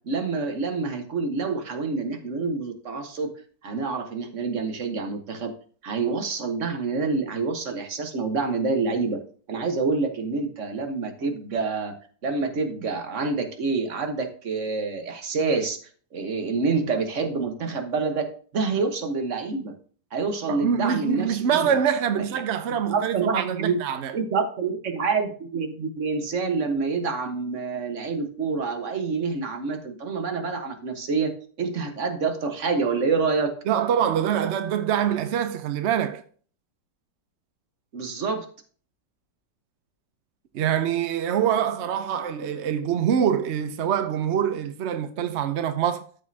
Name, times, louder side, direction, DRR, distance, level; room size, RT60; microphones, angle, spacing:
voice 1, 0.1-3.3 3.6-5.5 5.8-9.2 9.5-11.9 12.2-15.8 16.1-18.3 18.5-19.7 20.1-21.8 22.2-22.4 22.8-23.8 24.1-33.6 37.9-38.5, right 4 dB, 45° right, 1.4 m, -27 dB
voice 2, 20.5-24.1 33.7-36.2 40.5-46.0, right 8 dB, 70° right, 0.6 m, -25 dB
13.0 x 5.3 x 2.8 m
omnidirectional pair, 1.9 m